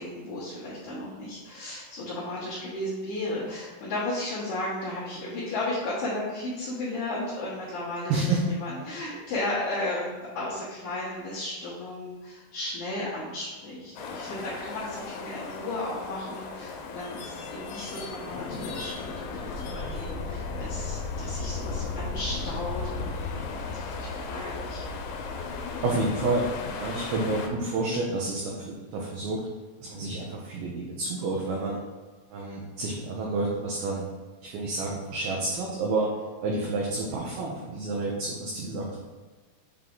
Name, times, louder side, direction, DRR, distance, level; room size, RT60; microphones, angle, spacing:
voice 1, 0.0-24.8, left 2 dB, 60° left, -11 dB, 2.0 m, -34 dB
voice 2, 8.1-8.5 25.8-29.4 29.8-31.8 32.3-34.1 34.4-36.1 36.4-39.0, right 2 dB, 80° right, -2 dB, 2.2 m, -29 dB
sound 1, 14.0-27.5, left 4 dB, 85° left, 3.0 m, -35 dB
7.6 x 3.6 x 3.8 m, 1.3 s
omnidirectional pair, 5.2 m